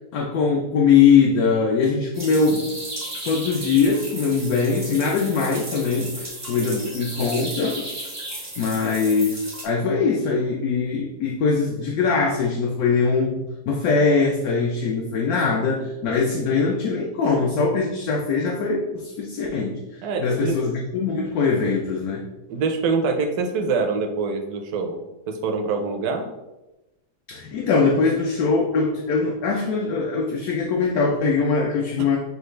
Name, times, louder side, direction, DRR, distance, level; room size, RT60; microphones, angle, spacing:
voice 1, 0.1-2.6 3.2-7.9 8.6-22.2 27.3-32.2, left 5 dB, 70° left, 0 dB, 1.0 m, -22 dB
sound 1, 2.1-9.7, right 1 dB, 25° right, 0.3 m, -35 dB
voice 2, 6.6-6.9 20.0-20.6 22.5-25.0 25.3-26.3 32.0-32.1, right 4 dB, 70° right, 4 dB, 1.1 m, -25 dB
6.3 x 2.3 x 3.1 m, 0.99 s
omnidirectional pair, 1.8 m